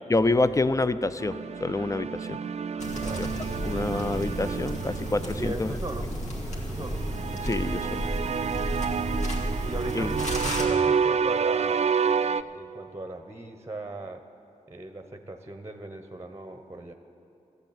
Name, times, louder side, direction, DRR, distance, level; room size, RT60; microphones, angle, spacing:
voice 1, 0.1-2.4 3.2-3.3 3.6-5.7 7.4-8.0 9.9-10.1, left 2 dB, 20° left, 13 dB, 0.6 m, -27 dB
sound 1, 1.2-5.5 7.0-12.4, right 6 dB, 50° right, 0.4 m, -29 dB
sound 2, 2.8-10.7, equal, 55° left, 2.3 m, -32 dB
voice 2, 3.0-3.3 5.3-6.1 6.5-7.0 8.7-9.3 9.6-14.2 14.7-16.9, right 2 dB, 20° right, 7 dB, 1.0 m, -39 dB
13.5 x 8.0 x 8.9 m, 2.9 s
supercardioid pair, 40°, 14 cm